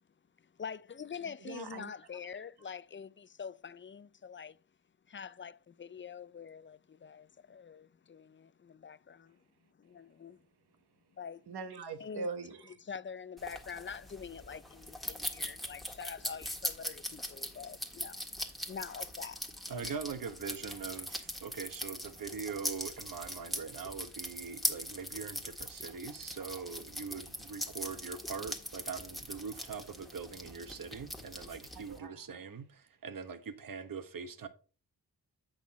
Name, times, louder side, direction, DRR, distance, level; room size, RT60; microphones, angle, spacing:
voice 1, 0.6-4.6 5.1-9.4 9.8-10.4 11.2-11.4 12.0-12.3 12.8-18.3 18.7-19.4 19.8-20.0, left 6 dB, 30° left, 0.4 m, -45 dB
voice 2, 1.4-1.9 11.5-12.8 31.9-32.2, right 4 dB, 80° right, 1.2 m, -41 dB
sound 1, 13.4-32.0, equal, ahead, 1.6 m, -41 dB
voice 3, 19.7-34.5, right 6 dB, 55° right, 1.2 m, -42 dB
8.1 x 6.5 x 4.1 m
cardioid pair, 70°, 39 cm